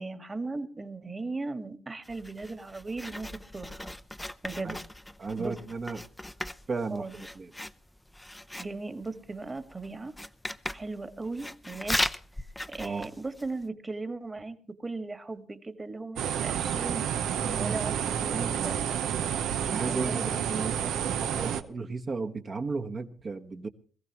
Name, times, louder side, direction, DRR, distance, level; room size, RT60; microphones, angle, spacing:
voice 1, 0.0-3.3 3.5-3.9 4.4-4.8 5.4-5.6 6.9-7.1 8.6-10.1 10.7-12.0 12.7-17.0 17.6-19.1 19.9-20.9, right 3 dB, 25° right, 9 dB, 1.8 m, -37 dB
Writing, 2.0-13.7, left 1 dB, 5° left, 0.6 m, -38 dB
voice 2, 5.2-6.0 6.7-7.5 12.8-13.1 17.4-17.8 19.7-20.2 20.6-20.8 21.2-23.7, right 4 dB, 40° right, 5 dB, 1.3 m, -34 dB
sound 1, 16.2-21.6, right 9 dB, 80° right, 0.8 m, -30 dB
22.0 x 15.0 x 3.0 m, 0.41 s
cardioid pair, 90°, 0 cm